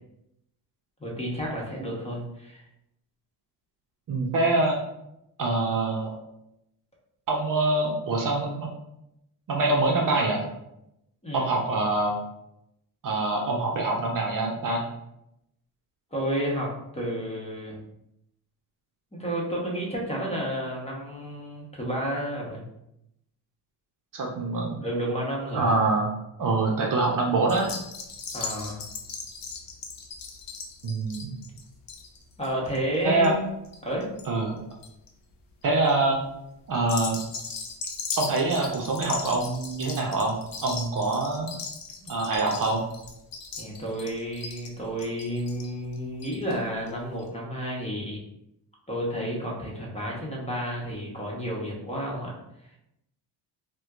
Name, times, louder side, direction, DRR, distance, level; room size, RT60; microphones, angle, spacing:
voice 1, 1.0-2.6 11.2-11.5 16.1-17.8 19.1-22.6 24.8-25.8 28.3-28.9 32.4-33.4 33.8-34.1 43.6-48.2 48.9-52.3, equal, 15° left, -3 dB, 1.0 m, -31 dB
voice 2, 4.1-4.8 5.4-6.1 7.3-8.7 9.5-10.5 11.3-12.1 13.0-14.8 24.1-24.8 25.5-26.1 26.4-27.7 30.8-31.3 33.0-33.3 34.3-34.6 35.6-36.2 36.7-37.2 38.2-41.5 42.1-42.8, right 2 dB, 45° right, 0 dB, 0.7 m, -25 dB
sound 1, 27.5-34.3 34.6-35.1 35.6-35.9 36.8-46.6 46.9-47.0 47.2-47.3, left 5 dB, 50° left, 0.7 m, -38 dB
4.2 x 2.2 x 2.4 m, 0.82 s
cardioid pair, 85°, 44 cm